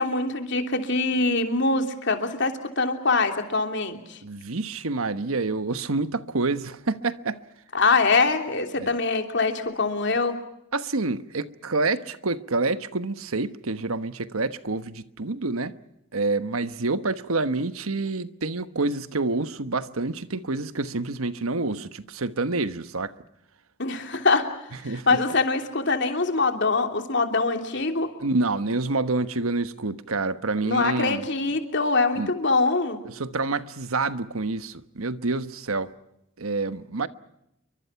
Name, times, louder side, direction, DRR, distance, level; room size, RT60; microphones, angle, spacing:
voice 1, 0.0-4.2 7.7-10.3 23.8-24.5 24.8-28.1 30.6-33.0, left 3 dB, 55° left, 3.1 m, -23 dB
voice 2, 4.2-7.4 8.8-8.9 10.7-15.7 16.1-23.1 24.8-25.2 28.2-31.2 32.2-32.3 33.0-35.9 36.4-37.1, right 3 dB, 90° right, 1.2 m, -27 dB
29.0 x 24.0 x 5.8 m
head